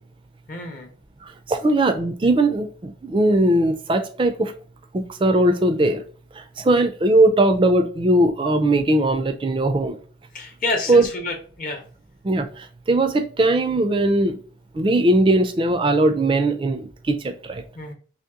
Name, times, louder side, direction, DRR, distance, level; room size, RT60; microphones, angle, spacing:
voice 1, 0.5-0.9 10.3-11.8 17.7-17.9, left 2 dB, 45° left, 0.7 m, -29 dB
voice 2, 1.2-4.5 4.9-6.0 6.6-10.0 10.9-11.1 12.2-14.4 14.7-17.6, right 1 dB, 25° right, 0.3 m, -19 dB
2.9 x 2.8 x 3.5 m
head